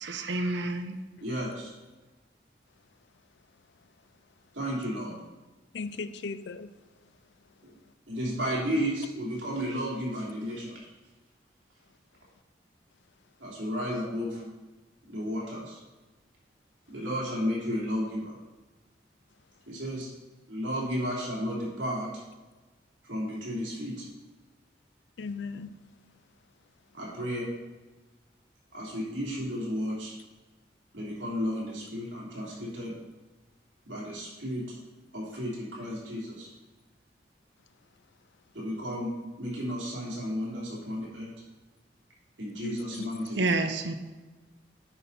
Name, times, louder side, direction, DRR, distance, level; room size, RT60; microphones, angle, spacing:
voice 1, 0.0-1.0 43.4-43.9, right 2 dB, 70° right, 0.7 m, -29 dB
voice 2, 1.2-1.7 4.5-5.1 7.6-7.7 8.1-10.9 13.4-14.4 15.1-15.8 16.9-18.4 19.7-20.1 20.5-22.1 23.0-24.1 26.9-27.5 28.7-30.2 30.9-32.9 33.8-34.7 35.1-36.5 38.5-39.1 39.4-41.3 42.4-43.5, equal, 85° right, 3.2 m, -33 dB
voice 3, 5.7-6.7 25.2-25.8 42.6-43.3, left 4 dB, 70° left, 0.5 m, -37 dB
9.9 x 5.7 x 4.2 m
head